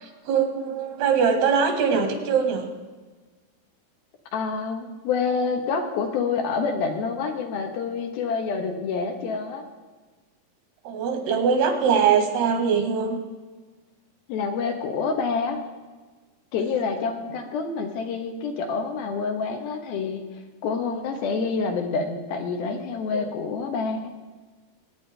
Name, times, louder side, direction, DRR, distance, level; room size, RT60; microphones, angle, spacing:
voice 1, 0.0-2.7 10.9-13.2 23.1-23.3, right 6 dB, 90° right, 4 dB, 3.6 m, -22 dB
voice 2, 4.3-9.6 14.3-15.6 16.5-20.2 20.6-24.0, left 5 dB, 75° left, 4 dB, 2.9 m, -27 dB
22.5 x 9.3 x 3.3 m, 1.3 s
omnidirectional pair, 4.5 m